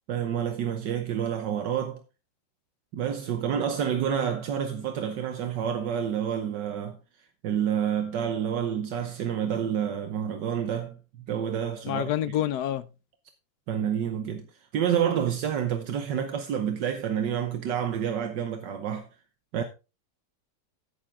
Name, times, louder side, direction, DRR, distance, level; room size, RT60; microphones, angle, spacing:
voice 1, 0.1-2.0 2.9-7.0 7.4-11.0 11.3-12.1 13.7-14.5 14.7-19.1 19.5-19.6, right 8 dB, 75° right, 1.5 m, -28 dB
voice 2, 11.8-12.9, left 12 dB, 70° left, 1.1 m, -27 dB
9.2 x 8.8 x 3.6 m
omnidirectional pair, 2.0 m